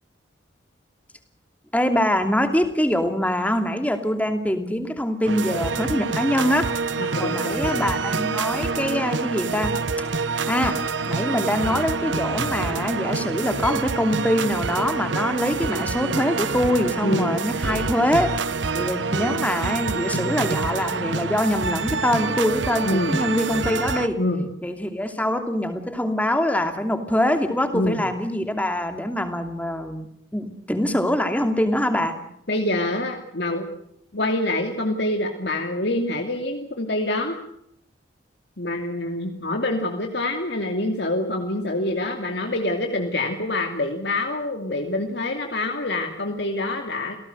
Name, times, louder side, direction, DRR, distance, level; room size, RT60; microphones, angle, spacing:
voice 1, 1.7-6.7 7.2-10.1 10.5-18.3 18.7-24.2 24.6-30.1 30.3-32.2, left 1 dB, 10° left, 7 dB, 2.7 m, -24 dB
sound 1, 5.2-24.1, right 4 dB, 75° right, 1.2 m, -27 dB
voice 2, 7.0-7.9 17.0-17.4 22.8-23.2 24.2-24.5 27.7-28.0 32.5-33.7 34.1-37.4 38.6-47.2, left 1 dB, 60° left, 3 dB, 2.6 m, -26 dB
28.5 x 18.0 x 7.9 m, 0.74 s
head